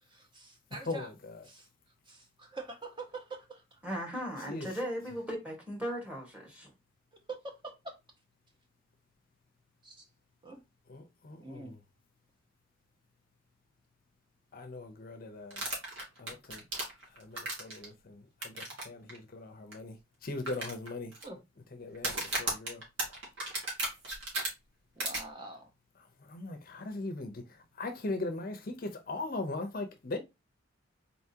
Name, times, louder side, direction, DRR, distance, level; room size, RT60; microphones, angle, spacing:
voice 1, 0.1-1.1 1.4-1.7 2.1-3.8 7.3-7.9 9.8-10.0 10.4-10.6 11.4-11.7 21.2-21.4 25.0-25.7, right 3 dB, 25° right, 0.9 m, -45 dB
voice 2, 3.8-6.7, equal, 5° right, 1.4 m, -37 dB
voice 3, 10.9-11.8 14.5-15.7 16.2-16.7 17.2-20.0 20.2-21.1 21.8-22.8 26.2-27.4 27.8-30.2, left 2 dB, 45° left, 0.6 m, -39 dB
sound 1, 15.5-17.9 18.4-18.8 19.1-19.2 19.7-19.8 20.5-21.2 21.9-24.5 25.0-25.2, right 2 dB, 65° right, 2.0 m, -34 dB
4.1 x 3.5 x 2.8 m
head